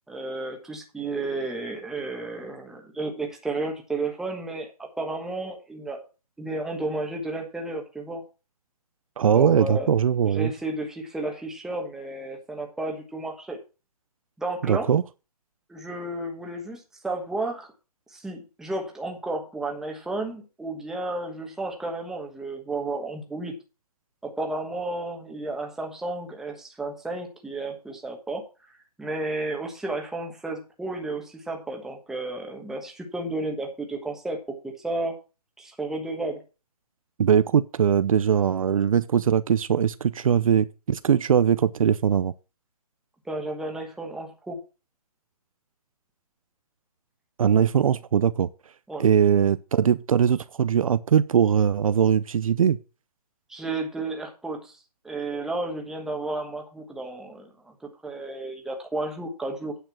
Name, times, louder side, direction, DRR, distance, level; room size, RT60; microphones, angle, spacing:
voice 1, 0.1-6.0 6.4-8.2 9.3-13.6 14.4-14.9 15.7-17.7 18.1-23.6 24.2-28.4 29.0-34.4 34.6-35.1 35.6-36.4 43.3-44.6 48.9-49.1 53.5-54.7 55.0-59.7, right 2 dB, ahead, 1.3 m, -32 dB
voice 2, 9.2-10.5 14.6-15.0 37.2-42.3 47.4-48.5 49.0-52.8, right 8 dB, 60° right, 0.6 m, -21 dB
9.2 x 6.5 x 5.9 m
hypercardioid pair, 165°, 20 cm